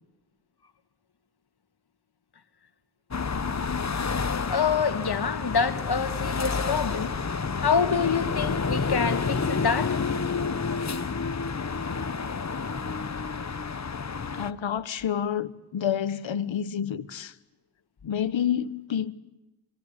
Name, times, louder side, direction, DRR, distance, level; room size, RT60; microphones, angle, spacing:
sound 1, 3.1-14.5, left 5 dB, 35° left, 1.4 m, -29 dB
voice 1, 4.2-7.1 7.6-10.0, left 6 dB, 55° left, 2.4 m, -27 dB
voice 2, 14.3-17.3 18.0-19.1, left 9 dB, 75° left, 1.5 m, -29 dB
26.5 x 25.0 x 8.4 m
cardioid pair, 70°, 46 cm